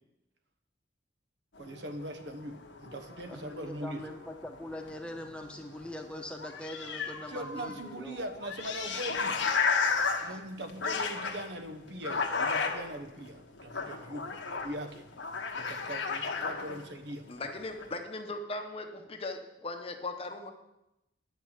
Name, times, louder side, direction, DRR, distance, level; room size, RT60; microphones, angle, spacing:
sound 1, 1.6-5.9 6.1-6.2 6.4-17.1 17.4-18.0, left 5 dB, 85° left, 1.3 m, -34 dB
voice 1, 1.6-4.1 7.3-9.4 10.2-15.1 15.5-17.3, right 1 dB, 65° right, 7 dB, 1.1 m, -41 dB
voice 2, 3.3-8.2 10.3-10.4, left 1 dB, 5° left, 3 dB, 1.1 m, -42 dB
voice 3, 17.3-20.5, left 2 dB, 30° left, 5 dB, 0.9 m, -38 dB
10.0 x 6.5 x 8.0 m, 0.90 s
head